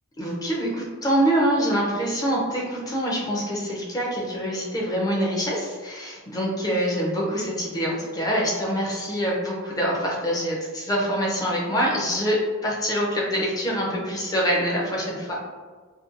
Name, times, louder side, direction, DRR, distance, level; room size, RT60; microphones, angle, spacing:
voice 1, 0.2-15.4, equal, 15° left, -3 dB, 0.4 m, -25 dB
2.5 x 2.2 x 2.5 m, 1.5 s
head